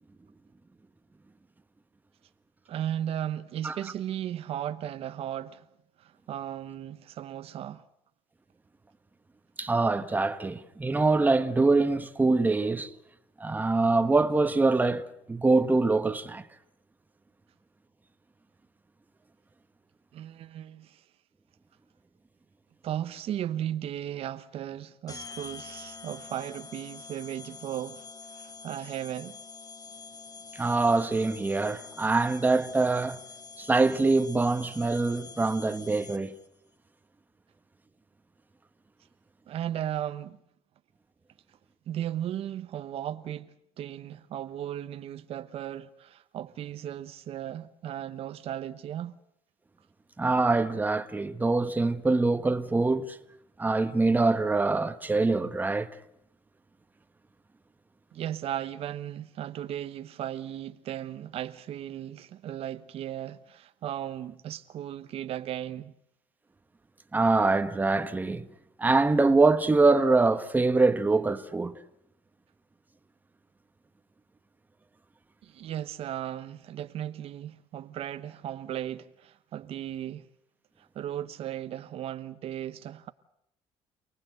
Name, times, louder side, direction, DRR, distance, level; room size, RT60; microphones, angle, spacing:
voice 1, 2.7-5.7 6.0-7.8 20.1-21.0 22.8-28.0 28.3-29.4 39.5-40.4 41.9-49.1 58.1-65.9 75.4-80.3 80.8-83.1, right 11 dB, 65° right, 0.9 m, -36 dB
voice 2, 9.6-12.9 13.4-16.5 30.5-33.2 33.6-36.3 50.2-53.2 53.6-55.9 67.1-68.5 68.8-71.8, right 3 dB, 15° right, 1.3 m, -24 dB
sound 1, 25.1-36.5, left 5 dB, 30° left, 1.6 m, -46 dB
28.5 x 19.0 x 7.9 m
cardioid pair, 110°, 11 cm